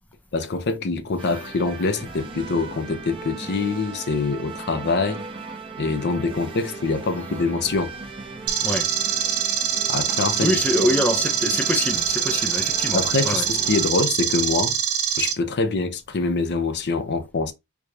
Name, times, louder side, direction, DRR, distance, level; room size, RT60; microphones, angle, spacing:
voice 1, 0.3-5.2 5.8-7.9 9.9-10.5 10.8-10.9 12.9-14.7 15.2-17.5, left 3 dB, 50° left, 0.6 m, -24 dB
sound 1, 1.2-13.9, right 4 dB, 25° right, 0.9 m, -37 dB
sound 2, 8.5-15.3, right 8 dB, 80° right, 0.8 m, -24 dB
voice 2, 10.4-13.5, left 1 dB, 5° left, 0.4 m, -25 dB
4.7 x 2.3 x 2.6 m
head